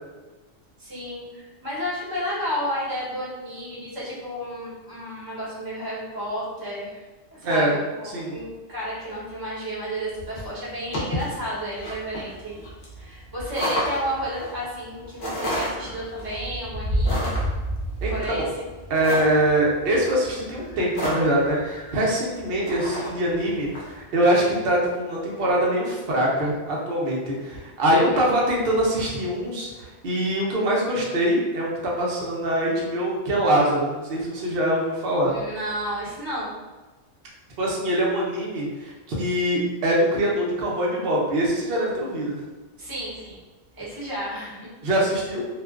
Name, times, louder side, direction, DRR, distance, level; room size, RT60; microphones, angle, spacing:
voice 1, 0.8-7.0 7.3-12.6 13.0-17.3 18.1-18.7 28.1-28.2 35.2-36.5 42.8-43.4 43.7-44.7, equal, 20° right, -9 dB, 0.7 m, -32 dB
voice 2, 7.4-7.8 8.0-8.3 18.0-18.1 18.9-35.4 37.6-42.4 44.8-45.5, right 1 dB, 55° right, -3 dB, 0.7 m, -23 dB
sound 1, 10.2-23.9, equal, 45° left, 0.6 m, -30 dB
2.4 x 2.2 x 2.3 m, 1.2 s
omnidirectional pair, 1.4 m